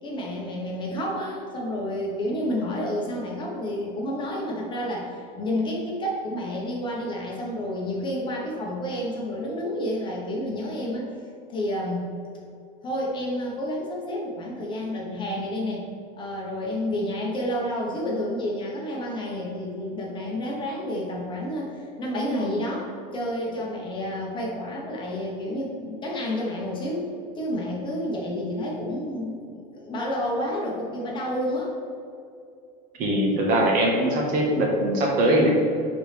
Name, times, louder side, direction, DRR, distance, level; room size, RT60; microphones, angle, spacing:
voice 1, 0.0-11.1 11.5-12.0 12.8-15.9 16.2-31.7, left 1 dB, 25° left, -3 dB, 1.3 m, -30 dB
voice 2, 33.0-35.5, right 1 dB, 45° right, -1 dB, 1.6 m, -21 dB
10.0 x 4.3 x 3.5 m, 2.5 s
supercardioid pair, 150°, 20 cm